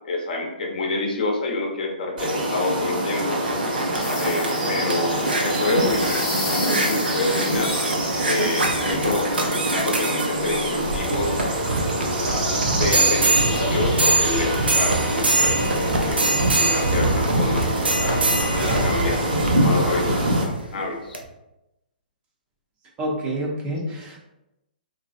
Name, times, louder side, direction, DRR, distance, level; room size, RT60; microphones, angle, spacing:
voice 1, 0.0-3.4 4.2-7.8 8.2-11.6 11.9-12.3 12.8-15.6 16.0-18.3 18.7-21.2 23.8-23.9, left 2 dB, 60° left, 0 dB, 0.8 m, -28 dB
sound 1, 2.2-20.4, right 1 dB, 65° right, 1.2 m, -25 dB
sound 2, 3.0-20.6 21.1-21.2, right 2 dB, 85° right, 0.6 m, -24 dB
sound 3, 4.0-8.9, left 9 dB, 30° left, 0.3 m, -36 dB
voice 2, 23.0-24.2, right 1 dB, 20° right, -1 dB, 0.6 m, -28 dB
3.0 x 2.6 x 2.5 m, 0.91 s
hypercardioid pair, 130°, 5 cm